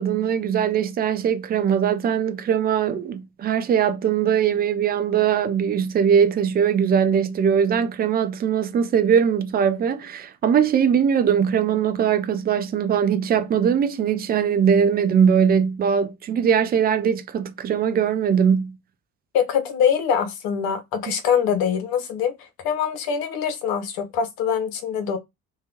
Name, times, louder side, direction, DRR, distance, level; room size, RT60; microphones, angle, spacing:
voice 1, 0.0-18.8, right 7 dB, 25° right, 0.4 m, -21 dB
voice 2, 19.3-25.2, left 7 dB, 55° left, 0.8 m, -24 dB
2.8 x 2.2 x 2.7 m
figure-of-eight pair, 45°, 44 cm